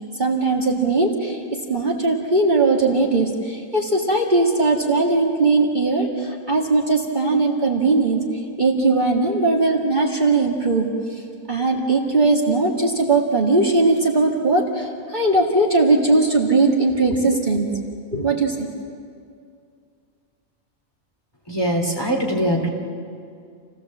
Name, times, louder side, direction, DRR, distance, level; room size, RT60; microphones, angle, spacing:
voice 1, 0.2-8.2 8.6-11.2 11.5-17.8 18.1-18.7, right 3 dB, 35° right, -1 dB, 2.1 m, -19 dB
voice 2, 21.5-22.7, equal, 20° left, 0 dB, 2.6 m, -22 dB
28.5 x 17.0 x 7.4 m, 2.3 s
omnidirectional pair, 1.4 m